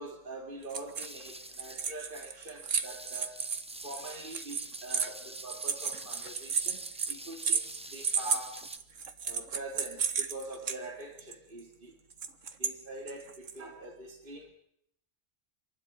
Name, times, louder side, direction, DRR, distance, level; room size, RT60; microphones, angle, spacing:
voice 1, 0.0-3.4 3.8-6.8 7.1-8.6 9.2-11.9 12.6-14.5, right 2 dB, 45° right, 1 dB, 2.6 m, -44 dB
sound 1, 0.6-1.2 1.5-10.7 11.2-11.3 12.1-12.7 13.1-13.6, right 6 dB, 90° right, 1.6 m, -33 dB
sound 2, 0.8-8.8, right 1 dB, 5° right, 1.0 m, -47 dB
26.5 x 12.0 x 9.4 m, 0.73 s
omnidirectional pair, 1.3 m